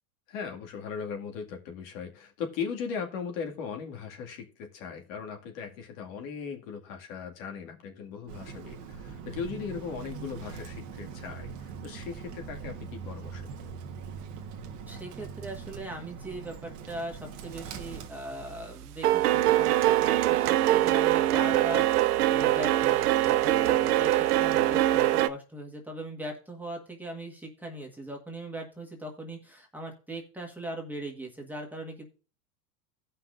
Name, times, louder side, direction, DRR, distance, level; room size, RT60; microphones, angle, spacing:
voice 1, 0.3-13.8, left 6 dB, 60° left, 3 dB, 2.2 m, -38 dB
Bird, 8.3-18.1, right 5 dB, 40° right, 1.3 m, -42 dB
voice 2, 14.9-32.1, right 1 dB, 5° right, 0 dB, 1.4 m, -40 dB
sound 1, 17.7-18.1 18.4-25.3, right 14 dB, 85° right, 0.7 m, -23 dB
16.5 x 5.7 x 2.5 m, 0.36 s
supercardioid pair, 130°, 44 cm